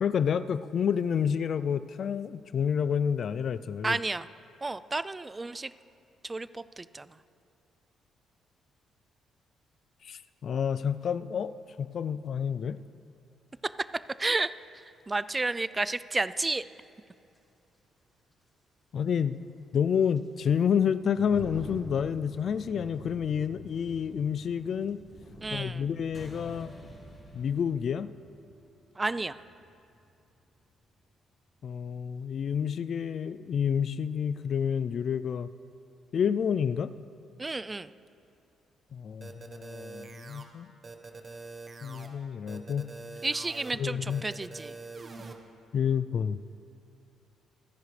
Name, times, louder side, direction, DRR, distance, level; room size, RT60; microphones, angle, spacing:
voice 1, 0.0-4.0 10.0-11.5 11.8-12.8 18.9-19.4 19.7-25.0 25.5-26.7 27.3-28.1 31.6-35.5 36.1-36.9 38.9-40.7 41.8-42.8 43.8-44.2 45.7-46.4, left 7 dB, 55° left, 14 dB, 0.4 m, -29 dB
voice 2, 3.8-4.3 4.6-5.7 6.2-7.1 14.2-14.5 15.1-16.6 25.4-25.9 29.0-29.4 37.4-37.9 43.2-44.7, right 3 dB, 20° right, 15 dB, 0.4 m, -31 dB
sound 1, 14.2-14.3 16.8-16.9 17.3-17.4 19.0-27.2, right 1 dB, 5° right, 3.9 m, -48 dB
sound 2, 26.1-31.0, equal, 30° left, 3.3 m, -52 dB
sound 3, 39.2-40.4 40.8-42.1 42.5-43.7 44.1-45.3, right 3 dB, 40° right, 1.2 m, -44 dB
27.5 x 10.5 x 3.3 m, 2.7 s
cardioid pair, 90°, 0 cm